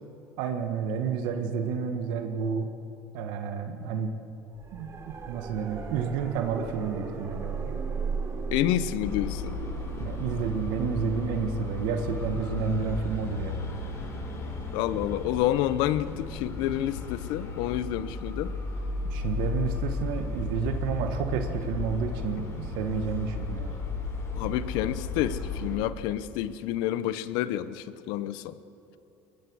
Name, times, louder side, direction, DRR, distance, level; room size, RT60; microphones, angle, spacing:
voice 1, 0.4-2.7 3.1-4.1 4.7-7.7 10.0-13.7 19.1-23.7, right 6 dB, 75° right, 6 dB, 1.5 m, -30 dB
sound 1, 4.6-17.4 19.8-19.9, right 4 dB, 35° right, 3.2 m, -38 dB
voice 2, 8.5-9.6 14.7-18.5 24.4-28.6, left 13 dB, 75° left, 15 dB, 0.9 m, -29 dB
sound 2, 9.0-25.8, left 3 dB, 40° left, 4.6 m, -34 dB
21.0 x 21.0 x 6.3 m, 2.9 s
supercardioid pair, 110°, 8 cm